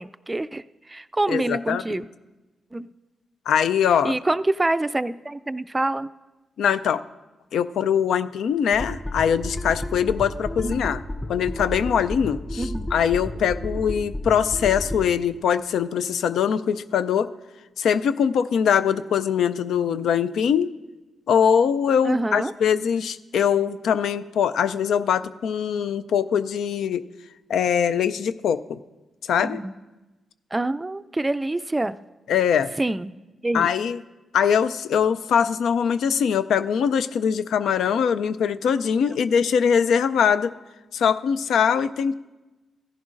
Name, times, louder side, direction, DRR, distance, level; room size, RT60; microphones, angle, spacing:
voice 1, 0.0-2.0 2.7-2.9 4.0-6.1 10.6-10.9 12.6-12.9 22.0-22.5 29.4-29.7 30.5-32.0 32.8-33.1 33.4-33.7, right 2 dB, 20° right, 14 dB, 0.3 m, -26 dB
voice 2, 1.3-1.8 3.5-4.1 6.6-7.0 7.5-11.0 11.3-17.3 17.8-20.7 21.3-27.1 27.5-28.8 29.3-29.6 32.3-32.7 33.5-34.0 34.3-40.5 40.9-42.2, left 7 dB, 80° left, 13 dB, 0.3 m, -22 dB
sound 1, 8.7-15.1, left 1 dB, 30° left, 2.8 m, -32 dB
16.0 x 11.0 x 2.5 m, 1.1 s
supercardioid pair, 50°, 0 cm